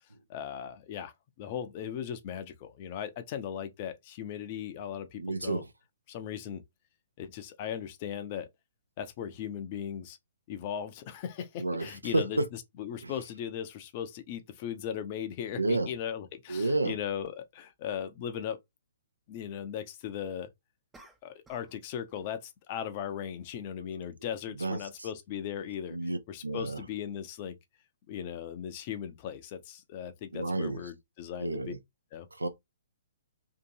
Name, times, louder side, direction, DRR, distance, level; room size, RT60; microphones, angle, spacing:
voice 1, 0.3-1.1 1.4-5.6 6.1-6.6 7.2-8.5 9.0-10.2 10.5-18.6 19.3-20.5 21.2-26.0 26.3-27.6 28.1-31.7 32.1-32.3, left 9 dB, 35° left, 0.5 m, -38 dB
voice 2, 5.2-5.7 11.6-12.5 13.0-13.1 15.6-15.9 16.5-17.0 23.8-24.0 24.5-25.1 25.9-26.8 30.3-30.8 31.4-31.8 32.3-32.5, right 2 dB, 85° right, 0.5 m, -31 dB
sound 1, 20.9-21.8 22.1-22.4, right 2 dB, 10° right, 0.5 m, -57 dB
2.7 x 2.6 x 2.6 m
figure-of-eight pair, 125°, 0 cm